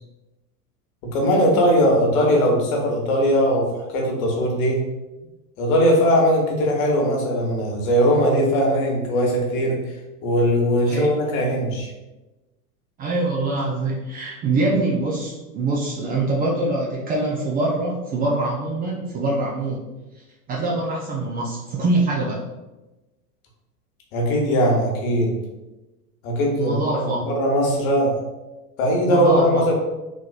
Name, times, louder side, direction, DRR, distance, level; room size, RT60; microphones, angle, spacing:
voice 1, 1.1-4.8 5.6-9.8 10.2-11.9 24.1-25.4 26.2-28.1 28.8-29.7, equal, 60° left, 0 dB, 1.2 m, -20 dB
voice 2, 13.0-19.8 20.1-22.4 26.6-27.2 29.1-29.7, right 2 dB, 20° right, -4 dB, 0.4 m, -24 dB
4.0 x 2.9 x 2.3 m, 1.1 s
hypercardioid pair, 85°, 47 cm